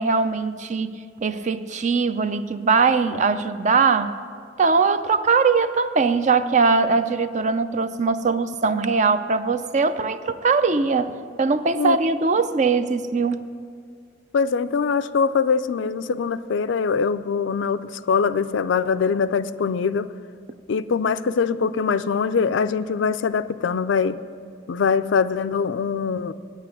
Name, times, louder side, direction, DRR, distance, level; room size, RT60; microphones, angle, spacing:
voice 1, 0.0-4.1 4.6-13.5, right 4 dB, 40° right, 11 dB, 0.4 m, -21 dB
voice 2, 14.3-20.1 20.7-24.2 24.7-26.3, left 5 dB, 75° left, 13 dB, 0.4 m, -23 dB
9.3 x 8.4 x 8.9 m, 2.1 s
head